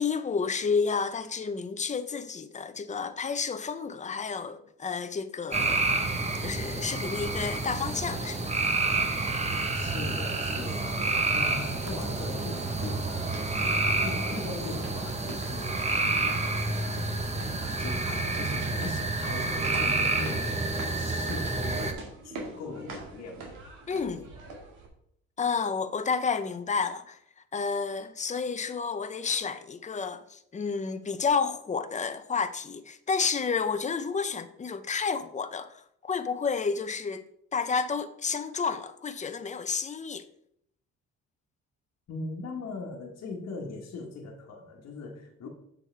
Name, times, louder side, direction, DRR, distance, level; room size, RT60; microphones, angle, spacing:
voice 1, 0.0-5.9 6.4-8.5 23.9-24.3 25.4-27.2 27.5-37.2 37.5-40.3, left 5 dB, 25° left, 0.6 m, -30 dB
sound 1, 5.5-21.9, right 3 dB, 20° right, 1.0 m, -29 dB
voice 2, 9.7-16.5 16.8-17.1 17.6-23.4 42.1-45.5, left 3 dB, 60° left, 1.4 m, -40 dB
sound 2, 10.8-24.9, right 3 dB, 85° right, 1.9 m, -46 dB
7.4 x 6.3 x 3.3 m
cardioid pair, 90°, 30 cm